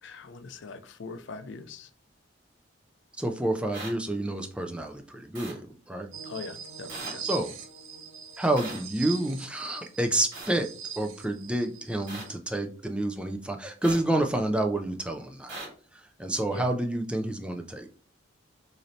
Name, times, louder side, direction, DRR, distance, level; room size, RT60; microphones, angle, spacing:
voice 1, 0.0-1.9 6.2-7.2 16.5-16.7, left 4 dB, 60° left, 8 dB, 0.4 m, -41 dB
voice 2, 3.2-6.1 7.2-7.5 8.4-10.7 11.0-15.6 15.9-17.9, right 1 dB, 5° right, 5 dB, 0.3 m, -29 dB
sound 1, 3.7-3.9 5.3-5.5 6.9-7.1 8.6-8.8 10.3-10.5 12.1-12.2 13.8-14.0 15.5-15.7, right 2 dB, 45° right, 2.0 m, -38 dB
sound 2, 6.1-12.3, right 7 dB, 80° right, 0.6 m, -42 dB
3.2 x 2.7 x 3.9 m, 0.41 s
head